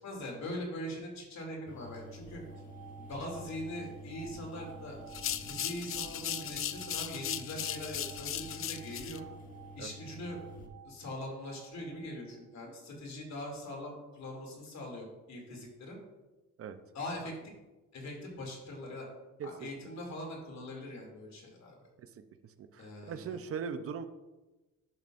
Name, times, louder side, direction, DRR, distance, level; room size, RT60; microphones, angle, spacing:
voice 1, 0.0-2.4 3.0-5.0 5.4-9.2 9.8-10.4 10.8-16.0 16.9-17.3 17.9-19.1 19.4-21.8 22.8-23.4, left 1 dB, 65° left, 0 dB, 2.7 m, -42 dB
sound 1, 1.7-10.7, equal, 25° left, 1.4 m, -49 dB
sound 2, 2.4-12.5, right 9 dB, 70° right, 2.9 m, -54 dB
sound 3, 5.1-9.2, left 10 dB, 45° left, 0.5 m, -37 dB
voice 2, 22.6-24.1, right 6 dB, 50° right, 9 dB, 0.7 m, -39 dB
11.0 x 6.8 x 2.5 m, 1.1 s
cardioid pair, 90°, 30 cm